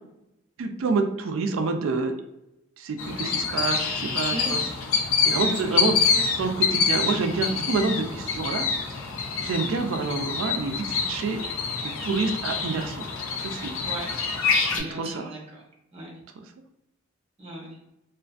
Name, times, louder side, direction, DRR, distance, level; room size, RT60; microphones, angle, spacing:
voice 1, 0.6-2.1 2.8-4.6 5.2-5.9 6.4-8.7 9.4-11.4 11.8-13.1 13.4-13.7 14.8-15.3, right 4 dB, 85° right, 5 dB, 0.3 m, -27 dB
sound 1, 3.0-14.8, left 5 dB, 90° left, 0.4 m, -26 dB
voice 2, 5.3-6.5 13.8-14.1 14.5-15.6 15.9-16.1 17.4-17.7, right 2 dB, 30° right, -3 dB, 0.8 m, -36 dB
2.4 x 2.3 x 2.4 m, 0.87 s
head